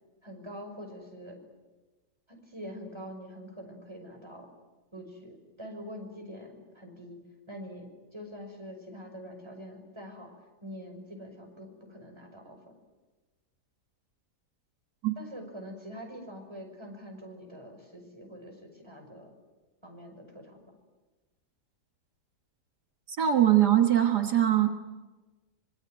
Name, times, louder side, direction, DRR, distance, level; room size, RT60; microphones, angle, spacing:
voice 1, 0.2-1.4 2.3-4.5 4.9-7.2 7.5-10.3 10.6-12.8 15.2-19.3 19.8-20.6, equal, 15° right, 2 dB, 6.0 m, -45 dB
voice 2, 23.1-24.7, right 11 dB, 75° right, 5 dB, 2.1 m, -22 dB
26.0 x 23.5 x 9.3 m, 1.2 s
omnidirectional pair, 1.8 m